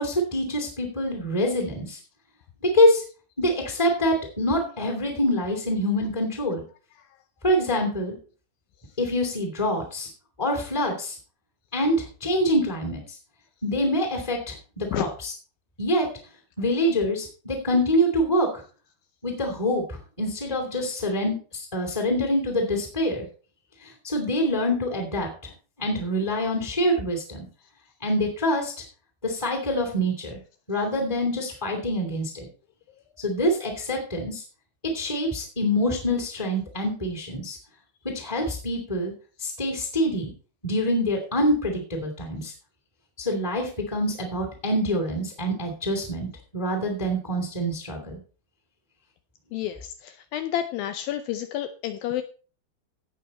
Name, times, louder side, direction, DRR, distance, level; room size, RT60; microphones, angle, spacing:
voice 1, 0.0-2.0 2.7-3.0 3.4-6.6 7.4-8.1 9.0-10.1 10.4-11.2 11.7-13.0 13.6-15.3 15.8-16.1 16.6-18.5 19.2-23.3 23.8-25.5 25.8-27.5 28.0-28.7 29.2-30.4 30.7-32.5 33.2-34.4 34.9-37.6 38.1-39.1 39.4-40.3 40.6-42.5 43.2-46.3 46.5-48.2, equal, 10° left, 1 dB, 1.9 m, -25 dB
voice 2, 49.5-52.2, left 11 dB, 85° left, 10 dB, 2.0 m, -30 dB
17.0 x 6.0 x 4.3 m, 0.38 s
omnidirectional pair, 4.9 m